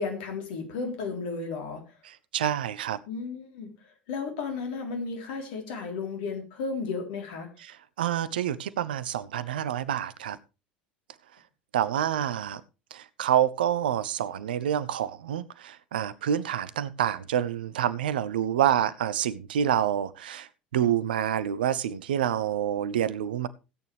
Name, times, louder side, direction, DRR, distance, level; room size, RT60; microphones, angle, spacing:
voice 1, 0.0-1.8 3.1-3.7 4.1-7.5, left 4 dB, 60° left, 5 dB, 3.8 m, -33 dB
voice 2, 2.3-3.0 8.0-10.4 11.7-12.6 12.9-20.5 20.7-23.5, right 10 dB, 70° right, 18 dB, 0.8 m, -27 dB
16.5 x 9.2 x 3.4 m, 0.30 s
figure-of-eight pair, 70°, 5 cm